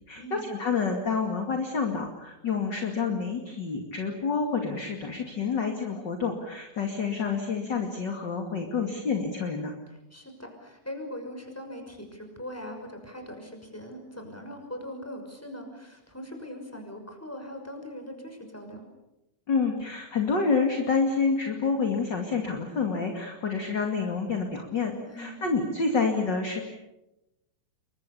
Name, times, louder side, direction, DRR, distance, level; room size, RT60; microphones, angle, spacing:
voice 1, 0.1-9.7 19.5-26.6, left 5 dB, 35° left, 3 dB, 2.6 m, -28 dB
voice 2, 10.1-18.8 25.1-25.4, equal, 5° left, 4 dB, 5.8 m, -41 dB
29.0 x 23.5 x 6.9 m, 0.92 s
omnidirectional pair, 4.1 m